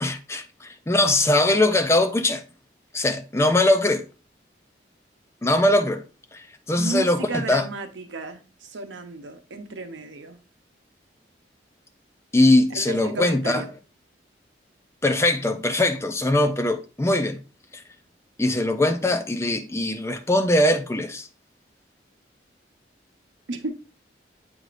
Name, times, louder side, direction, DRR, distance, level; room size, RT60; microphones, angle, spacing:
voice 1, 0.0-2.4 2.9-4.0 5.4-6.0 6.3-7.6 12.3-13.6 15.0-17.4 17.7-17.8 18.4-21.3, left 1 dB, 15° left, 0.4 m, -21 dB
voice 2, 6.7-10.4 12.7-13.7 23.5-23.8, right 2 dB, 90° right, 0.8 m, -33 dB
7.9 x 4.8 x 2.5 m
head